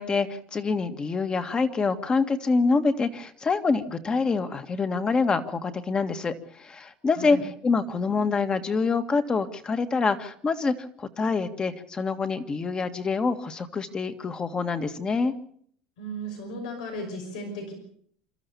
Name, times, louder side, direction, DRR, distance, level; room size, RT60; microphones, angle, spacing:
voice 1, 0.0-15.3, left 4 dB, 25° left, 8 dB, 1.9 m, -26 dB
voice 2, 16.0-17.7, equal, 90° left, 3 dB, 5.8 m, -35 dB
28.0 x 13.0 x 7.1 m, 0.62 s
supercardioid pair, 110°, 4 cm